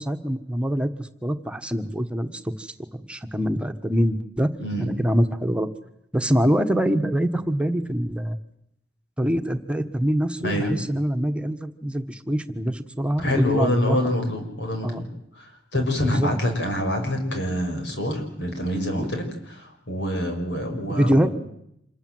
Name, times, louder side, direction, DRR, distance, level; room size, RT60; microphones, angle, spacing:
voice 1, 0.0-4.5 4.8-5.7 6.1-8.4 9.2-14.0 14.8-15.0 16.0-16.3 19.0-19.1 20.9-21.3, equal, 5° right, 7 dB, 1.3 m, -24 dB
voice 2, 4.6-5.0 10.4-10.7 13.2-15.1 15.3-21.3, left 1 dB, 90° left, 4 dB, 6.2 m, -26 dB
27.0 x 20.0 x 7.9 m, 0.77 s
head